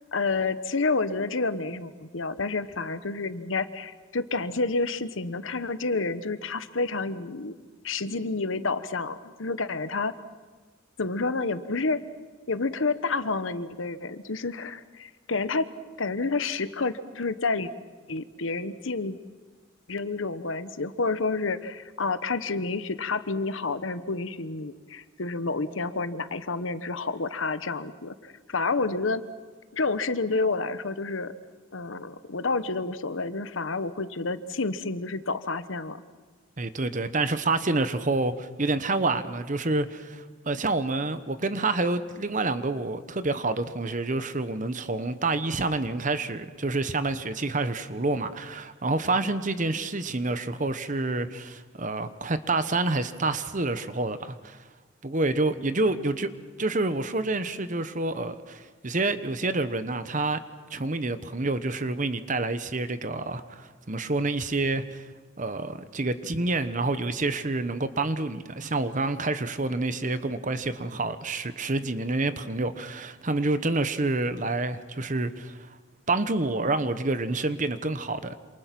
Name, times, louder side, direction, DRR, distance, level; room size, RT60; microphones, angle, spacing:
voice 1, 0.1-7.5 7.8-10.1 11.0-12.0 12.5-15.7 16.0-17.7 18.1-19.2 19.9-29.2 29.7-31.3 31.7-36.0, left 3 dB, 75° left, 12 dB, 1.1 m, -29 dB
voice 2, 36.6-54.6 55.0-56.3 56.6-60.4 60.7-65.0 65.4-75.8 76.1-78.4, right 2 dB, 40° right, 12 dB, 1.0 m, -28 dB
27.5 x 27.0 x 6.1 m, 1.4 s
head